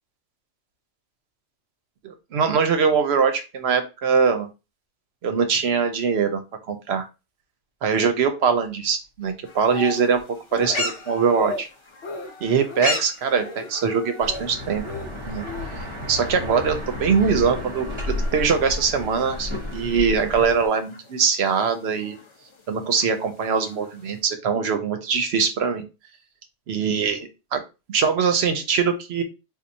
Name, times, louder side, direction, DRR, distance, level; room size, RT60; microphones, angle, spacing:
voice 1, 2.0-4.5 5.2-6.4 6.7-7.1 7.8-10.2 10.5-11.7 12.4-14.8 15.3-15.4 16.1-22.2 22.7-25.8 26.7-27.6 27.9-29.2, right 6 dB, 65° right, 7 dB, 0.8 m, -22 dB
Speech, 9.2-10.2 10.5-10.9 11.3-11.6 12.0-12.3 12.7-13.0 13.4-13.7 14.1-14.5 14.8-15.7 16.4-16.7, left 2 dB, 70° left, 1.0 m, -34 dB
sound 1, 9.4-24.2, left 3 dB, 45° left, 0.4 m, -38 dB
sound 2, 14.2-20.7, left 2 dB, 25° right, 0.8 m, -32 dB
4.4 x 2.4 x 2.6 m, 0.28 s
omnidirectional pair, 1.3 m